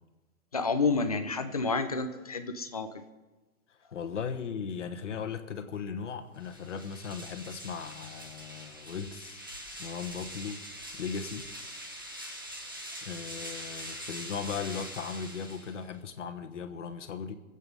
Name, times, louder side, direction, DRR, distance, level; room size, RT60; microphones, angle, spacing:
voice 1, 0.5-2.9, left 4 dB, 25° left, 8 dB, 0.6 m, -29 dB
voice 2, 3.9-9.4 9.8-10.6 11.0-11.5 13.0-17.4, left 6 dB, 55° left, 9 dB, 1.4 m, -37 dB
sound 1, 6.3-16.0, equal, 15° right, 0.6 m, -43 dB
22.0 x 8.3 x 5.4 m, 1.2 s
hypercardioid pair, 175°, 42 cm